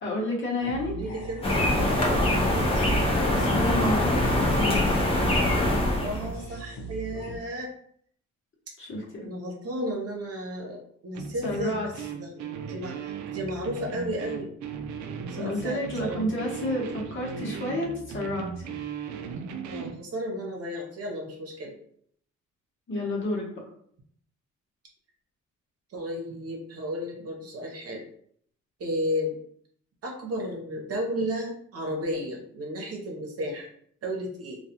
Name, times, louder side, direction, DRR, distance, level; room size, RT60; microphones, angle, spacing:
voice 1, 0.0-1.0 3.3-4.8 8.8-9.0 11.4-11.9 15.4-18.5 22.9-23.5, left 1 dB, 40° left, -3 dB, 1.0 m, -30 dB
sound 1, 0.6-7.4, right 3 dB, 75° left, 0.8 m, -38 dB
voice 2, 0.9-1.5 2.0-2.9 6.0-7.7 9.2-14.5 15.3-16.2 19.7-21.7 25.9-28.0 28.8-29.4 30.0-33.7 34.0-34.6, equal, 50° right, 0 dB, 0.8 m, -33 dB
sound 2, 1.4-6.3, left 1 dB, 20° left, 0.7 m, -23 dB
sound 3, 11.1-20.0, right 6 dB, 75° right, 0.4 m, -37 dB
2.3 x 2.3 x 2.8 m, 0.64 s
cardioid pair, 90°, 30 cm